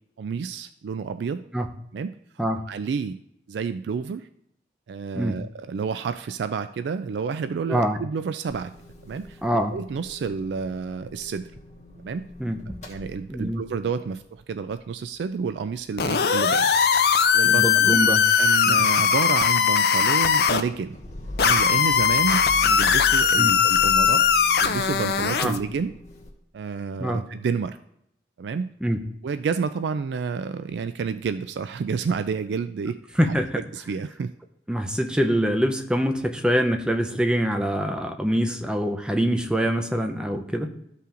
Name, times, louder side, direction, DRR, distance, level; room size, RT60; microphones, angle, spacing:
voice 1, 0.2-1.4 1.9-2.1 2.7-3.2 3.5-4.3 4.9-8.7 9.0-11.5 12.0-12.2 12.9-16.7 17.3-18.1 18.4-21.0 21.4-24.2 24.6-25.9 26.5-27.8 28.4-28.7 29.2-33.0 33.3-34.3, right 5 dB, 70° right, 11 dB, 0.3 m, -30 dB
Motor vehicle (road) / Engine starting / Idling, 8.5-16.2 16.5-26.3, left 1 dB, 40° left, 1.3 m, -43 dB
voice 2, 9.4-9.8 12.4-12.6 13.3-13.6 16.2-16.3 17.4-18.2 18.7-18.8 23.4-23.5 25.4-25.6 27.0-27.2 28.8-29.0 33.2-33.6 34.7-40.7, equal, 5° right, 5 dB, 0.6 m, -24 dB
sound 1, 16.0-20.6 21.4-25.6, left 7 dB, 60° left, 0.5 m, -20 dB
13.5 x 5.6 x 2.5 m, 0.74 s
head